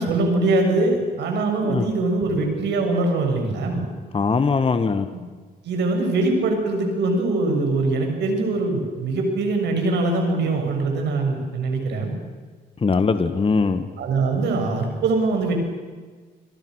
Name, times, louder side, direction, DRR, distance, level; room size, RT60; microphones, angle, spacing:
voice 1, 0.0-3.9 5.6-12.1 14.0-15.5, right 2 dB, 80° right, 3 dB, 7.1 m, -22 dB
voice 2, 4.1-5.1 12.8-13.9, left 4 dB, 30° left, 9 dB, 1.7 m, -21 dB
29.0 x 24.5 x 6.5 m, 1.5 s
cardioid pair, 85°, 18 cm